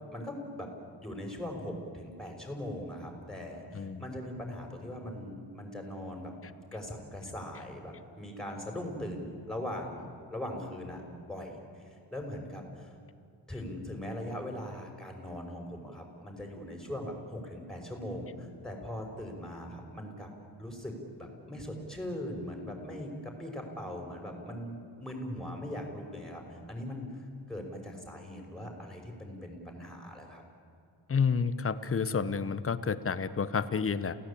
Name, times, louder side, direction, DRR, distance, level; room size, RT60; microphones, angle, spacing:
voice 1, 0.1-0.7 1.0-6.3 6.7-11.0 11.3-11.6 12.1-12.9 13.5-20.3 20.6-27.1 27.5-30.4, left 1 dB, ahead, 2 dB, 5.6 m, -40 dB
voice 2, 3.7-4.0 31.1-34.2, left 6 dB, 30° left, 13 dB, 1.1 m, -30 dB
28.5 x 17.0 x 8.7 m, 2.5 s
cardioid pair, 120°, 41 cm